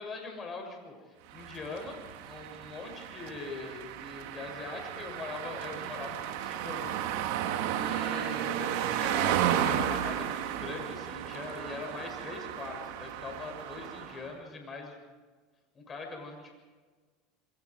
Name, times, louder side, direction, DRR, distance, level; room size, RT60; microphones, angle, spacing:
voice 1, 0.0-7.1 7.8-15.1 15.7-16.6, left 3 dB, 25° left, 3 dB, 7.1 m, -42 dB
sound 1, 1.3-14.3, right 10 dB, 70° right, 2.1 m, -33 dB
28.5 x 21.5 x 4.9 m, 1.4 s
supercardioid pair, 110°, 0 cm